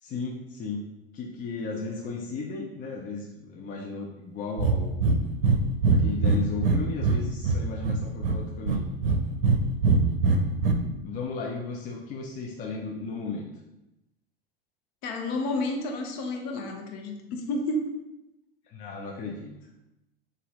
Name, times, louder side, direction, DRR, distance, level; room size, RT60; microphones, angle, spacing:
voice 1, 0.0-0.8 1.1-5.1 5.9-8.9 11.0-13.5 18.7-19.5, left 4 dB, 25° left, -1 dB, 0.5 m, -35 dB
Breathing, 4.6-4.8 5.0-5.2 5.4-5.6 5.8-7.2 7.4-8.4 8.7-9.6 9.8-10.7, right 4 dB, 65° right, 0.6 m, -21 dB
voice 2, 15.0-17.8, left 2 dB, 45° left, 2 dB, 0.9 m, -30 dB
4.1 x 2.6 x 3.6 m, 0.93 s
figure-of-eight pair, 85°, 31 cm